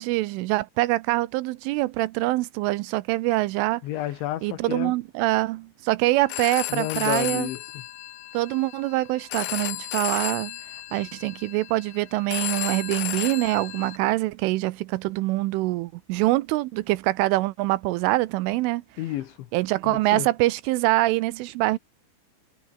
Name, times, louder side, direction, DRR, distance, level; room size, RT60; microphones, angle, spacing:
voice 1, 0.0-3.8 4.4-7.5 8.3-10.5 10.9-18.8 19.5-21.8, right 19 dB, 80° right, 3.2 m, -24 dB
voice 2, 3.8-4.9 6.7-7.6 19.0-19.5 19.8-20.3, left 14 dB, 70° left, 3.4 m, -30 dB
Telephone, 6.1-14.0, left 16 dB, 85° left, 3.8 m, -34 dB
omnidirectional pair, 5.9 m